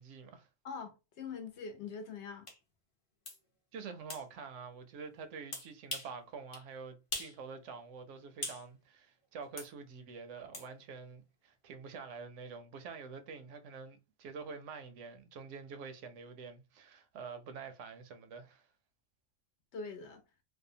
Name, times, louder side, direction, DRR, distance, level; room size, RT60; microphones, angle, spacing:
voice 1, 0.0-0.5 3.7-18.7, right 5 dB, 75° right, 0.9 m, -47 dB
voice 2, 0.6-2.5 19.7-20.2, left 5 dB, 70° left, 0.9 m, -43 dB
sound 1, 2.5-2.6 3.2-3.4 4.1-4.2 5.5-6.1 6.5-6.7 7.1-7.4 7.7-8.6 9.6-9.7 10.5-10.7, left 2 dB, 30° left, 0.7 m, -41 dB
2.7 x 2.1 x 2.6 m
omnidirectional pair, 1.3 m